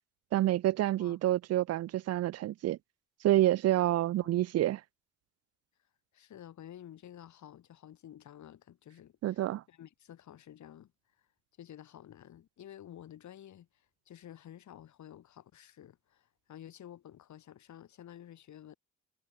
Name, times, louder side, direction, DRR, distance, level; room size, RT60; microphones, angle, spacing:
voice 1, 0.3-2.8 3.2-4.8 9.2-9.6, right 14 dB, 55° right, 0.4 m, -28 dB
voice 2, 6.1-9.4 9.7-10.9 11.6-18.7, left 11 dB, 70° left, 7.0 m, -51 dB
cardioid pair, 90°, 30 cm